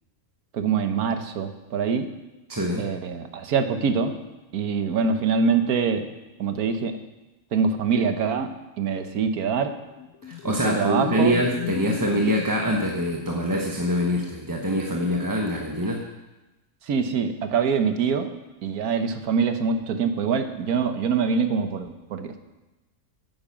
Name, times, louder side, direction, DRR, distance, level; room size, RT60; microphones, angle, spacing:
voice 1, 0.5-2.1 2.8-4.2 4.5-6.1 6.4-7.0 7.5-9.7 10.5-11.3 16.8-18.3 18.6-22.4, right 5 dB, 85° right, 8 dB, 1.5 m, -24 dB
voice 2, 2.5-2.9 10.3-16.0, equal, 15° right, -1 dB, 0.9 m, -24 dB
sound 1, 9.7-13.7, left 10 dB, 80° left, 1.2 m, -35 dB
9.8 x 8.9 x 7.3 m, 1.1 s
omnidirectional pair, 1.5 m